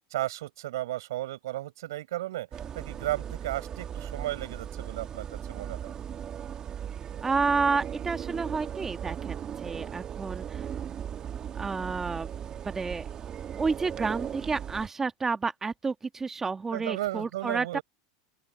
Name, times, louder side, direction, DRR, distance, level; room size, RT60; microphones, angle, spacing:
voice 1, 0.1-5.9 16.7-17.8, right 15 dB, 80° right, 7.6 m, -34 dB
sound 1, 2.5-14.9, right 9 dB, 35° right, 2.2 m, -37 dB
voice 2, 7.2-10.7 11.5-12.3 12.6-13.0 13.6-17.8, right 4 dB, 20° right, 1.6 m, -30 dB
open air
hypercardioid pair, 100°, 2 cm